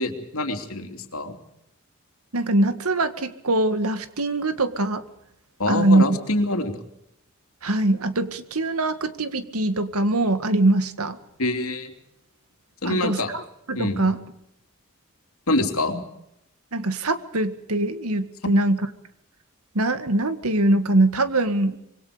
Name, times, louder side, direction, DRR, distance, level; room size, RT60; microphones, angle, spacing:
voice 1, 0.0-1.4 5.6-6.8 11.4-11.9 12.8-13.3 13.8-14.1 15.5-16.0, left 2 dB, 80° left, 5 dB, 3.1 m, -25 dB
voice 2, 2.3-5.0 5.7-6.2 7.6-11.2 12.9-13.2 13.7-14.2 16.7-18.9 19.7-21.8, right 2 dB, 90° right, 10 dB, 2.0 m, -22 dB
26.0 x 23.0 x 5.2 m, 0.78 s
head